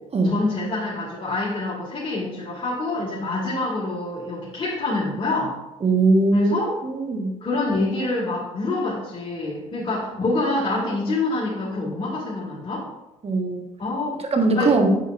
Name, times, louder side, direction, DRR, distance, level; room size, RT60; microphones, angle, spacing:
voice 1, 0.2-5.6 6.3-6.7 7.4-12.9 13.8-14.2 14.5-14.7, left 2 dB, 35° left, -7 dB, 2.2 m, -26 dB
voice 2, 5.8-7.3 13.2-13.6 14.3-15.0, right 3 dB, 35° right, 4 dB, 1.4 m, -20 dB
8.0 x 7.2 x 2.6 m, 1.0 s
hypercardioid pair, 50°, 17 cm